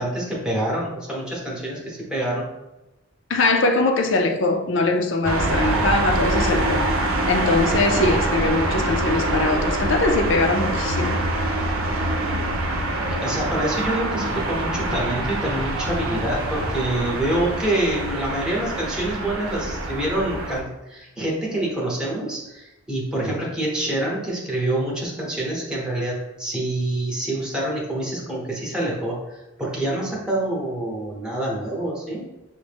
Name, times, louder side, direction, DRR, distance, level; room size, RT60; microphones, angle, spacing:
voice 1, 0.0-2.5 13.1-32.2, right 1 dB, 5° right, 0.9 m, -26 dB
voice 2, 3.3-6.8 7.3-11.2, left 2 dB, 60° left, 0.5 m, -21 dB
sound 1, 5.2-20.6, right 1 dB, 80° right, 0.6 m, -25 dB
6.2 x 2.1 x 3.3 m
head